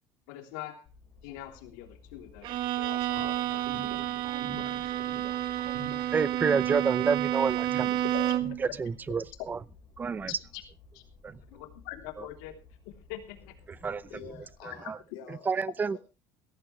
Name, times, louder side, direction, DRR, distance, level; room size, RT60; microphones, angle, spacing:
voice 1, 0.3-0.9 1.2-4.0 4.6-5.1 8.1-8.2 10.3-10.6 10.9-11.0 11.5-12.6 12.8-13.4, left 13 dB, 90° left, 5 dB, 3.3 m, -44 dB
sound 1, 0.8-14.6, left 4 dB, 55° left, 4.8 m, -56 dB
Bowed string instrument, 2.4-8.6, right 13 dB, 55° right, 1.0 m, -30 dB
sound 2, 3.2-9.2, right 4 dB, 75° right, 5.2 m, -44 dB
voice 2, 6.1-7.9 8.8-9.6 10.0-10.3 11.2-11.4 13.8-14.0 14.9-15.0 15.5-16.0, right 5 dB, 20° right, 19 dB, 0.7 m, -28 dB
voice 3, 13.7-16.0, left 9 dB, 70° left, 5 dB, 3.3 m, -49 dB
17.5 x 15.0 x 3.3 m, 0.30 s
cardioid pair, 140°, 9 cm